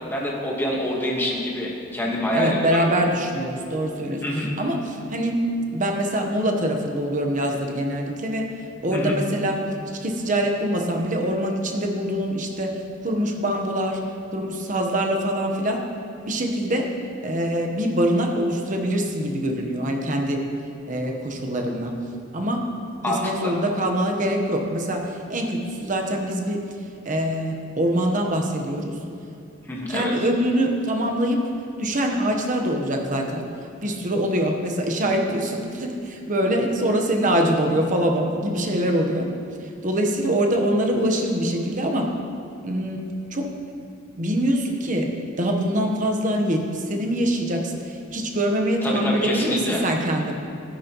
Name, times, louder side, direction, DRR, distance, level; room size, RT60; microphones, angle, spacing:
voice 1, 0.1-2.8 4.2-4.5 8.9-9.2 23.0-23.5 29.7-30.1 37.2-37.4 48.8-49.8, left 1 dB, 10° left, -3 dB, 1.5 m, -26 dB
voice 2, 2.3-4.2 4.6-5.4 5.7-8.5 8.8-9.6 10.0-12.7 13.0-14.0 14.3-15.8 16.2-16.9 17.2-20.4 20.9-21.9 22.3-22.6 23.1-26.6 27.0-28.9 29.9-31.4 31.8-33.4 33.8-39.3 39.8-42.1 42.6-43.0 43.3-43.4 44.2-45.1 45.4-50.4, right 1 dB, 40° right, 2 dB, 1.1 m, -24 dB
13.0 x 10.5 x 3.0 m, 2.5 s
head